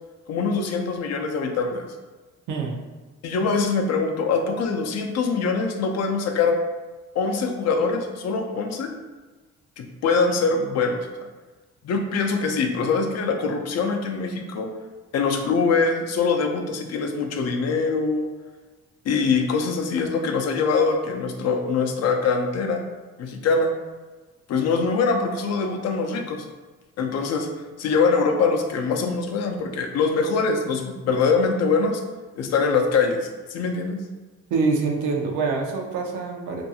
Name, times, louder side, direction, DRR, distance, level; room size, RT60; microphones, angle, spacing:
voice 1, 0.3-1.8 3.2-6.6 7.1-8.9 9.8-11.3 11.8-14.7 15.1-18.3 19.1-22.8 23.2-23.7 24.5-26.5 27.0-27.5 27.8-32.0 32.4-34.0, left 4 dB, 60° left, 3 dB, 0.4 m, -23 dB
voice 2, 34.5-36.6, right 4 dB, 90° right, 2 dB, 0.5 m, -25 dB
2.5 x 2.3 x 2.7 m, 1.2 s
cardioid pair, 90°, 30 cm